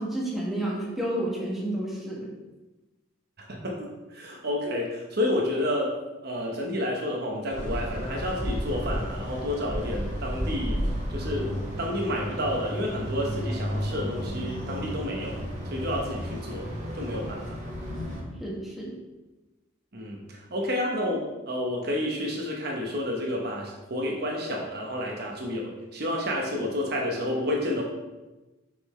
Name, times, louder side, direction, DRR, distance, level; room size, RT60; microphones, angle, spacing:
voice 1, 0.0-2.3 18.4-19.0, right 1 dB, ahead, -5 dB, 1.4 m, -30 dB
voice 2, 3.4-5.9 6.2-10.8 11.1-11.5 11.8-15.4 15.7-16.7 16.9-17.4 19.9-21.2 21.5-27.8, left 1 dB, 50° right, -1 dB, 1.0 m, -30 dB
sound 1, 7.5-18.2, equal, 35° right, 2.0 m, -32 dB
6.7 x 5.6 x 3.2 m, 1.1 s
head